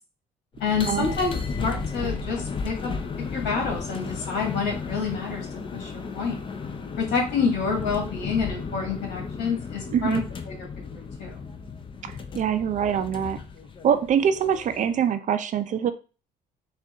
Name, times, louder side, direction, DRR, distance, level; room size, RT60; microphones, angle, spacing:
sound 1, 0.5-15.0, left 5 dB, 30° left, 0.5 m, -34 dB
voice 1, 0.6-1.3 1.6-2.9 3.3-5.5 5.7-6.4 7.0-10.2 10.9-11.4, left 5 dB, 80° left, 0 dB, 1.8 m, -28 dB
voice 2, 9.9-10.2 12.0-13.4 13.8-15.9, right 8 dB, 45° right, 10 dB, 0.5 m, -24 dB
4.4 x 2.5 x 3.5 m, 0.34 s
cardioid pair, 110°, 17 cm